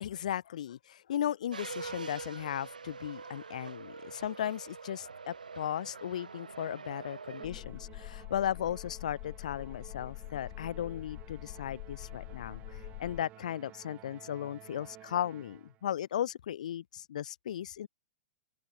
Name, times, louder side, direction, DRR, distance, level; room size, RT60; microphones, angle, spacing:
voice 1, 0.0-17.9, left 10 dB, 60° left, 0.6 m, -36 dB
sound 1, 1.5-7.5, right 5 dB, 75° right, 1.4 m, -45 dB
sound 2, 7.4-13.2, left 27 dB, 45° left, 1.0 m, -45 dB
Musical instrument, 7.4-15.9, right 15 dB, 30° right, 3.5 m, -54 dB
open air
figure-of-eight pair, 100°, 4 cm